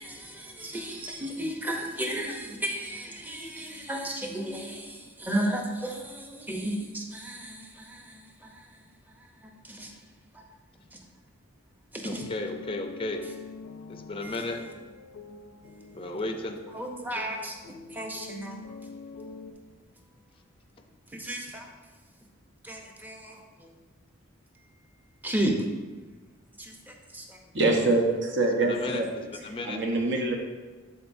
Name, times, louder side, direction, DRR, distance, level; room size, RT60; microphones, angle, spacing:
voice 1, 0.0-8.9 9.1-10.0 10.3-10.4 10.9-11.0 11.9-12.3 14.2-14.6 16.7-17.6 17.9-18.6 21.1-21.7 22.6-23.7 25.2-25.6 26.5-27.4, right 1 dB, 10° right, 1 dB, 0.7 m, -34 dB
voice 2, 12.0-13.2 13.9-14.6 15.9-16.6 28.6-29.8, left 2 dB, 25° left, 5 dB, 0.5 m, -34 dB
sound 1, 12.1-19.5, left 4 dB, 75° left, 0.5 m, -45 dB
voice 3, 27.5-29.1 29.7-30.4, right 2 dB, 60° right, 2 dB, 1.0 m, -24 dB
11.5 x 4.0 x 2.6 m, 1.3 s
head